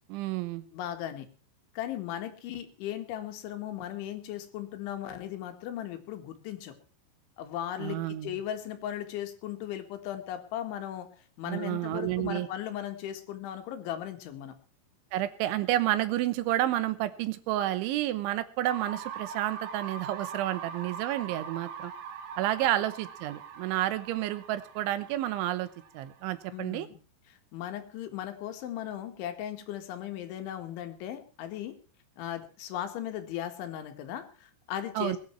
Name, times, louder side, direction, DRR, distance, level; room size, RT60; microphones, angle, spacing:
voice 1, 0.1-0.7 7.8-8.4 11.5-12.5 15.1-21.9 22.4-25.7 26.0-26.9 35.0-35.2, right 14 dB, 85° right, 14 dB, 3.4 m, -30 dB
voice 2, 0.7-1.3 1.7-6.7 7.4-11.1 11.4-14.5 26.5-27.0 27.3-31.7 32.2-35.2, left 11 dB, 85° left, 6 dB, 4.2 m, -37 dB
sound 1, 18.7-26.5, right 7 dB, 65° right, 3.5 m, -42 dB
21.0 x 10.0 x 4.5 m, 0.40 s
omnidirectional pair, 5.3 m